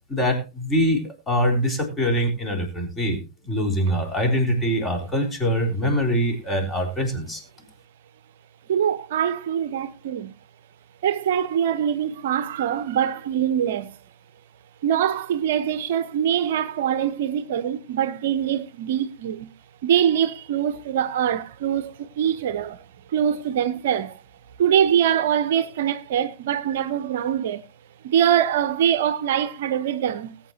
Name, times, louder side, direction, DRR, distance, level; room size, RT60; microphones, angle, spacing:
voice 1, 0.1-3.2 3.4-7.4, equal, 15° left, 4.2 m, -23 dB
voice 2, 8.7-10.3 11.0-14.0 14.8-19.5 19.8-24.2 24.6-27.6 28.0-30.3, right 9 dB, 55° right, 0.7 m, -23 dB
19.5 x 8.8 x 2.8 m
figure-of-eight pair, 90°, 0 cm